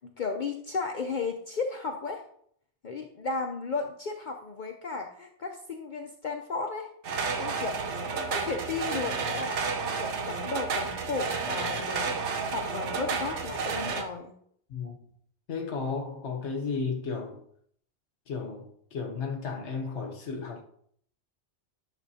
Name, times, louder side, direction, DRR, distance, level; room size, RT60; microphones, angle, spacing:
voice 1, 0.0-2.2 2.8-6.9 7.4-7.8 8.2-14.3, left 4 dB, 50° left, 0.7 m, -34 dB
sound 1, 7.0-14.0, right 4 dB, 90° right, 1.2 m, -31 dB
voice 2, 15.5-17.4 18.3-20.6, left 4 dB, 85° left, 1.3 m, -34 dB
10.5 x 6.2 x 2.7 m
omnidirectional pair, 1.1 m